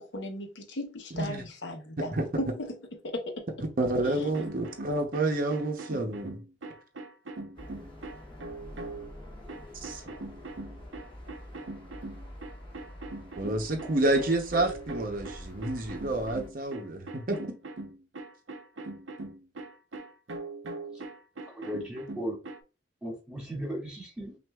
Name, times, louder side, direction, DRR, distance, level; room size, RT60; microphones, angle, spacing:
voice 1, 0.0-2.8 3.0-3.4 4.0-4.3, left 1 dB, 75° left, 0.9 m, -36 dB
voice 2, 1.1-1.4 2.1-2.3 3.8-6.4 9.8-10.0 13.4-17.4, right 2 dB, 50° right, 0.7 m, -29 dB
sound 1, 4.2-9.1 9.5-22.6, right 2 dB, 85° right, 0.7 m, -42 dB
sound 2, 7.5-16.5, left 1 dB, 25° left, 1.2 m, -47 dB
voice 3, 21.4-22.4 23.0-24.4, equal, 5° right, 1.9 m, -36 dB
6.1 x 2.5 x 2.3 m
head